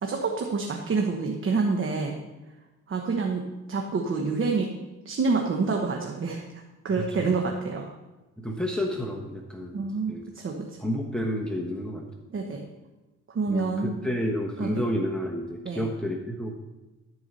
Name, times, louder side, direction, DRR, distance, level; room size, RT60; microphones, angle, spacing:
voice 1, 0.0-2.1 2.9-4.7 5.0-7.9 9.7-10.8 12.3-12.6 13.3-14.0 14.6-14.8 15.6-15.9, right 4 dB, 40° right, 1 dB, 1.2 m, -28 dB
voice 2, 8.4-10.2 10.8-12.1 13.5-16.7, equal, 5° left, 0 dB, 1.1 m, -30 dB
13.0 x 4.7 x 5.6 m, 1.1 s
cardioid pair, 90°, 30 cm